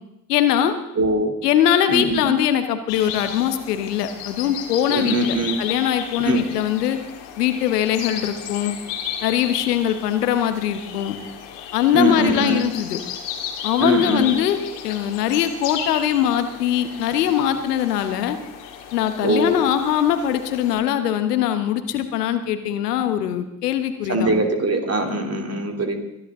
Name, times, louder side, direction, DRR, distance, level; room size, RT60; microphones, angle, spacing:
voice 1, 0.3-0.7 1.4-7.0 7.4-8.8 9.2-11.2 11.7-13.0 13.6-14.6 14.8-18.4 18.9-24.3, left 10 dB, 85° left, 9 dB, 1.2 m, -21 dB
voice 2, 1.0-1.3 1.9-2.2 4.9-5.6 6.2-6.4 11.9-12.6 13.8-14.4 19.2-19.6 24.1-26.0, right 1 dB, 30° right, 4 dB, 3.0 m, -22 dB
sound 1, 2.9-20.8, left 8 dB, 65° left, 2.2 m, -34 dB
22.5 x 11.5 x 3.7 m, 0.86 s
hypercardioid pair, 60°, 46 cm